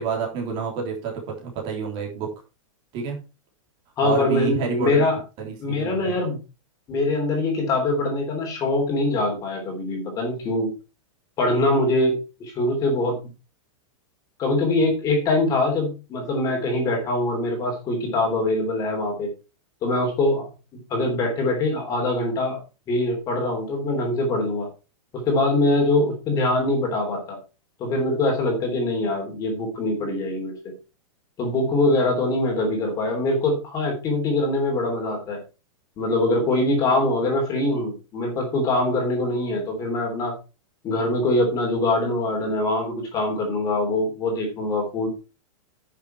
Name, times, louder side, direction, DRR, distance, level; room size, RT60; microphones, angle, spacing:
voice 1, 0.0-2.3 2.9-3.2 4.0-5.0 5.4-6.1, right 5 dB, 30° right, 0 dB, 3.3 m, -29 dB
voice 2, 4.0-5.2 5.6-6.4 6.9-10.7 11.4-12.1 12.4-13.2 14.4-19.3 19.8-20.5 20.9-22.6 22.9-24.7 25.3-27.4 27.8-30.5 31.4-35.4 36.0-40.3 40.8-45.1, left 2 dB, 20° left, 2 dB, 3.2 m, -23 dB
10.0 x 6.7 x 4.4 m, 0.31 s
supercardioid pair, 170°, 17 cm